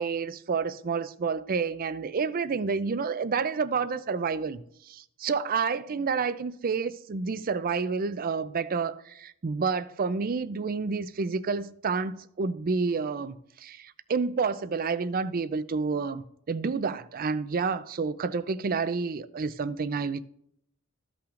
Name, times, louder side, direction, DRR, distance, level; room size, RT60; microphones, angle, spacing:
voice 1, 0.0-20.2, right 5 dB, 40° right, 0.4 m, -29 dB
14.5 x 5.7 x 2.5 m
head